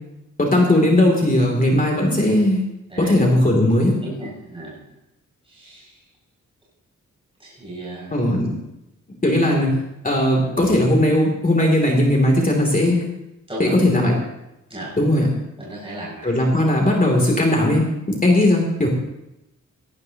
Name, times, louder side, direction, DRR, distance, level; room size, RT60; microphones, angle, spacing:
voice 1, 0.4-2.6 3.0-3.9 8.1-8.6 9.2-9.7 10.0-13.0 13.6-14.1 15.0-15.3 16.2-17.8 18.1-18.9, left 1 dB, 25° left, 0 dB, 2.9 m, -18 dB
voice 2, 4.0-4.9 5.4-6.0 7.4-8.2 10.4-10.6 13.5-13.7 14.7-15.0 15.6-16.3, right 1 dB, 15° right, -7 dB, 6.3 m, -35 dB
17.5 x 17.0 x 2.9 m, 0.89 s
wide cardioid pair, 100°, 32 cm